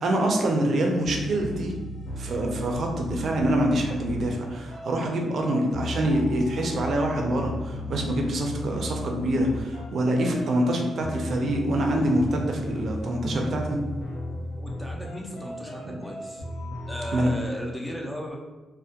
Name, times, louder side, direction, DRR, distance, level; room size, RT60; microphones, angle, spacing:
voice 1, 0.0-1.8 2.2-13.8 15.8-16.0 17.1-17.3, right 1 dB, 60° right, 1 dB, 0.4 m, -25 dB
sound 1, 1.0-17.4, left 1 dB, 80° left, 0.6 m, -36 dB
voice 2, 14.6-16.4 16.9-18.4, equal, 5° left, -1 dB, 0.4 m, -36 dB
2.2 x 2.1 x 2.7 m, 1.2 s
cardioid pair, 110°, 0 cm